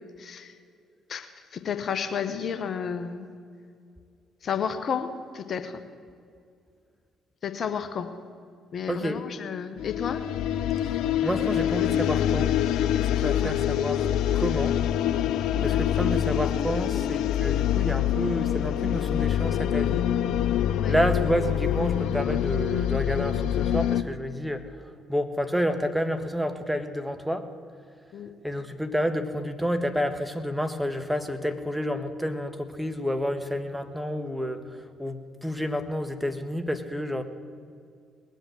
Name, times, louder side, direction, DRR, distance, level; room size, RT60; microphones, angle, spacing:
voice 1, 0.2-0.5 1.1-3.3 4.4-5.8 7.4-8.1 8.7-10.3 13.4-13.5 15.6-15.8 20.8-20.9 28.1-28.3, left 7 dB, 50° left, 9 dB, 1.0 m, -32 dB
voice 2, 8.9-9.2 11.2-12.5 13.0-14.1 14.3-14.8 15.6-20.1 20.9-24.6 25.1-27.4 28.4-34.6 35.0-37.2, equal, 5° right, 8 dB, 1.4 m, -29 dB
sound 1, 9.8-24.0, left 10 dB, 70° left, 0.5 m, -25 dB
20.0 x 7.9 x 7.7 m, 2.3 s
hypercardioid pair, 50°, 0 cm